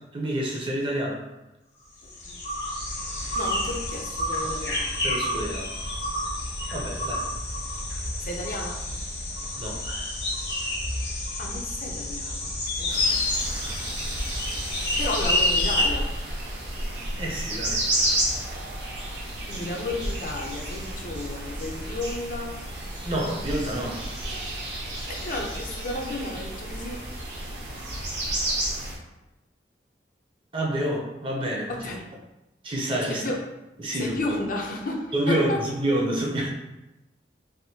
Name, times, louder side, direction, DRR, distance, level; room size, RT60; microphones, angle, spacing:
voice 1, 0.1-1.2 4.4-4.7 5.0-5.7 6.7-7.3 9.6-10.1 14.7-14.9 17.2-17.8 23.0-24.1 30.5-31.7 32.6-33.2 33.8-34.4 35.1-35.5 35.8-36.5, right 1 dB, 30° right, -2 dB, 0.5 m, -28 dB
sound 1, 2.0-15.9, left 1 dB, 75° left, 1.4 m, -29 dB
voice 2, 3.3-4.9 8.2-8.8 11.4-13.2 15.0-16.1 19.5-22.6 25.1-27.0 31.7-32.0 33.1-33.4 33.9-35.6, left 2 dB, 45° left, 0 dB, 0.5 m, -33 dB
sound 2, 12.9-29.0, right 1 dB, 75° right, 0.8 m, -31 dB
3.4 x 2.5 x 2.7 m, 0.98 s
head